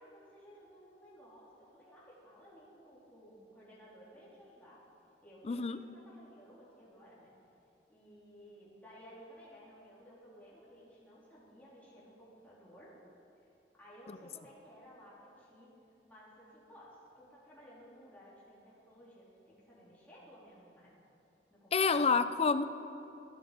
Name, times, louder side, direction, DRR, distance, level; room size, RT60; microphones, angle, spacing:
voice 1, 0.0-4.8 5.2-7.3 7.9-12.9 13.4-13.5 13.8-15.7 16.1-20.9 21.5-22.1, equal, 10° left, -8 dB, 3.7 m, -56 dB
voice 2, 5.4-5.8 14.1-14.2 21.7-22.6, left 5 dB, 35° left, 12 dB, 0.5 m, -28 dB
15.0 x 11.0 x 5.1 m, 2.8 s
head